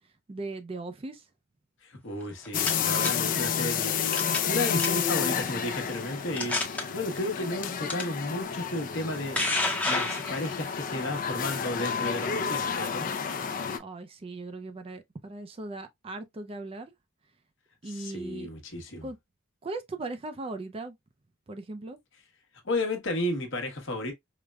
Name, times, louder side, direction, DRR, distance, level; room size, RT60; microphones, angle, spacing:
voice 1, 0.3-1.2 13.8-16.9 17.8-18.5 19.0-19.2 19.6-21.0 21.5-22.0, right 2 dB, 25° right, 0.4 m, -38 dB
voice 2, 1.8-9.4 9.9-13.1 17.8-19.1 22.6-24.1, left 1 dB, 60° left, 1.0 m, -33 dB
sound 1, 2.2-3.1 4.1-4.5 4.8-5.1 5.8-5.9 6.4-6.8 7.9-8.0 8.9-10.7, left 2 dB, 5° left, 0.7 m, -29 dB
sound 2, 2.5-13.8, left 7 dB, 40° left, 0.4 m, -30 dB
4.9 x 2.1 x 2.2 m
head